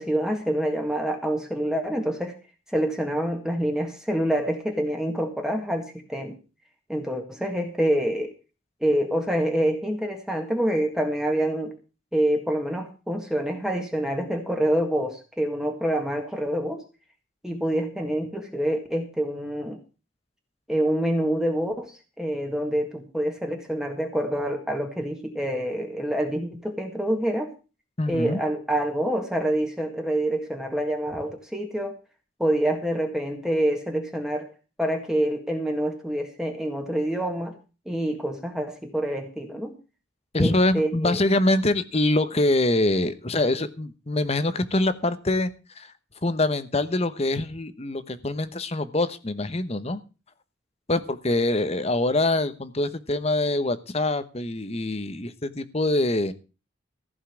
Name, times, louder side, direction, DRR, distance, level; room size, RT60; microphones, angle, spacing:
voice 1, 0.0-2.3 2.7-6.3 6.9-8.3 8.8-11.7 12.1-16.8 17.4-19.8 20.7-27.5 28.1-32.0 32.4-34.5 34.8-37.5 37.8-39.7 40.4-41.2, right 1 dB, 5° right, 3 dB, 1.8 m, -26 dB
voice 2, 28.0-28.4 40.3-45.5 45.8-45.9 46.2-50.0 50.9-56.3, left 2 dB, 30° left, 13 dB, 1.0 m, -24 dB
15.0 x 5.6 x 8.2 m, 0.33 s
head